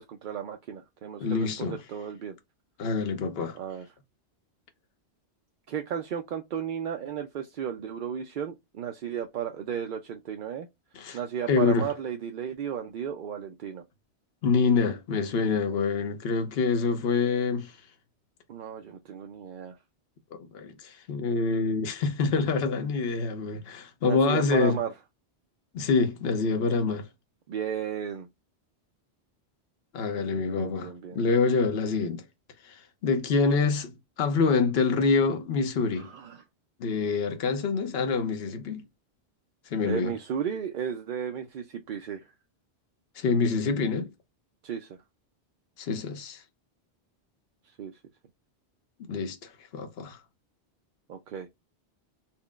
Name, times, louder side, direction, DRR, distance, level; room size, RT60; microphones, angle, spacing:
voice 1, 0.0-2.4 3.5-3.9 5.7-10.7 11.1-13.8 18.5-19.8 24.0-24.9 27.5-28.3 30.5-31.2 35.9-36.4 39.8-42.3 44.6-45.0 47.8-48.0 51.1-51.6, right 8 dB, 60° right, 0.6 m, -34 dB
voice 2, 1.2-1.8 2.8-3.6 10.9-11.2 11.5-11.9 14.4-17.7 20.4-24.8 25.7-27.1 29.9-32.2 32.6-33.9 34.2-36.1 36.8-38.8 39.7-40.1 43.2-44.1 45.8-46.4 49.1-50.2, left 4 dB, 70° left, 1.0 m, -26 dB
4.3 x 2.0 x 3.5 m
omnidirectional pair, 1.1 m